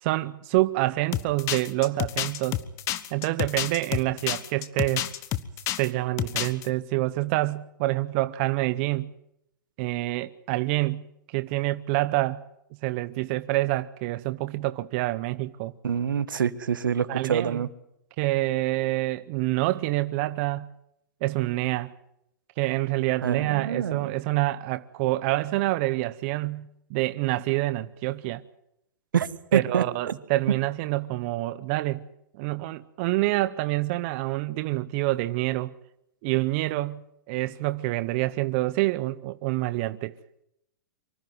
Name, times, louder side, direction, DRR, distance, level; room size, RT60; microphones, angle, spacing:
voice 1, 0.0-2.6 3.1-5.1 5.8-9.1 9.8-12.4 12.8-15.7 17.1-17.6 18.2-20.7 21.2-21.9 22.6-28.4 29.5-32.0 32.4-35.7 36.2-37.0 37.3-40.1, right 18 dB, 35° right, 0.8 m, -27 dB
sound 1, 1.1-5.9 6.2-6.7, left 13 dB, 30° left, 1.2 m, -29 dB
voice 2, 15.8-17.7 23.2-24.1 29.1-29.8, right 8 dB, 85° right, 1.5 m, -26 dB
25.0 x 13.5 x 9.4 m
hypercardioid pair, 145°, 11 cm